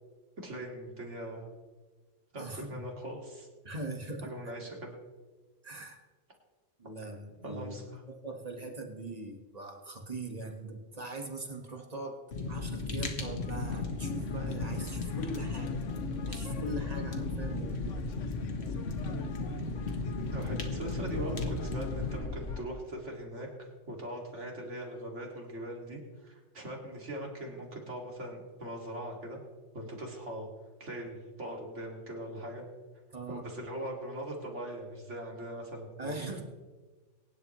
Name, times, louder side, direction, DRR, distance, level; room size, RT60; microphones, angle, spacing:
voice 1, 0.4-1.4 2.3-3.5 4.2-4.9 7.4-8.0 20.3-29.4 29.7-30.5 30.8-32.6 33.3-36.4, right 1 dB, 75° right, 0 dB, 2.9 m, -40 dB
voice 2, 2.4-2.8 3.6-4.5 5.6-6.0 6.8-7.7 8.1-12.2 12.5-15.8 16.3-18.0 33.1-33.4 36.0-36.4, right 2 dB, 30° right, 2 dB, 1.7 m, -41 dB
Fire, 12.3-22.2, left 3 dB, 60° left, 1.6 m, -35 dB
sound 1, 13.4-22.6, left 5 dB, 80° left, 1.2 m, -42 dB
23.0 x 11.0 x 3.2 m, 1.3 s
omnidirectional pair, 1.3 m